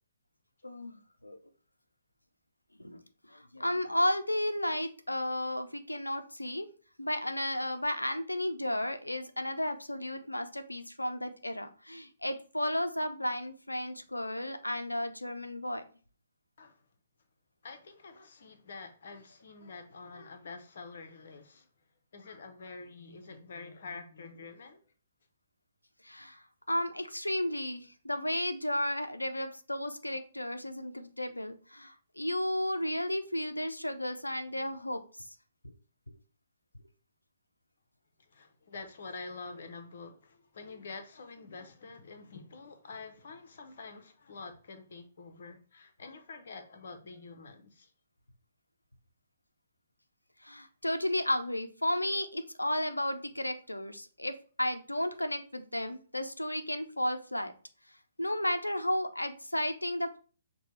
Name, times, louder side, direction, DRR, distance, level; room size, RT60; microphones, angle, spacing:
voice 1, 3.3-6.7 7.0-15.8 26.0-26.4 26.7-35.0 50.4-57.5 58.2-60.2, left 1 dB, 85° left, 0.5 m, -33 dB
voice 2, 17.6-21.7 22.1-24.8 38.3-47.9, left 4 dB, 50° left, 0.8 m, -47 dB
6.4 x 2.2 x 3.1 m
figure-of-eight pair, 125°, 0 cm